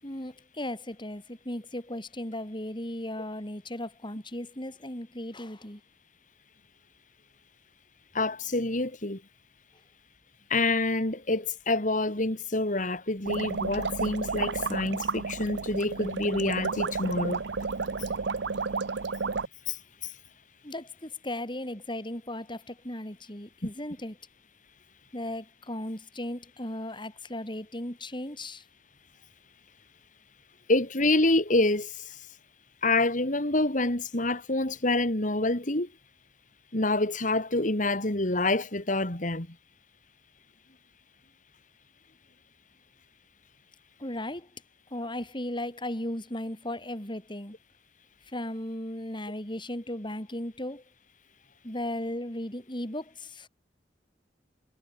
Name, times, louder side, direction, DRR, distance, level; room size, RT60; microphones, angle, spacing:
voice 1, 0.0-5.8 20.6-24.2 25.1-28.6 44.0-44.5 44.9-47.6 48.3-50.8 51.6-53.5, left 1 dB, 25° left, 7.2 m, -36 dB
voice 2, 8.1-9.2 10.5-17.4 19.7-20.1 23.6-23.7 30.7-32.2 32.8-35.9 36.7-39.6, left 2 dB, 45° left, 3.2 m, -27 dB
sound 1, 13.3-19.5, right 4 dB, 80° right, 0.8 m, -31 dB
head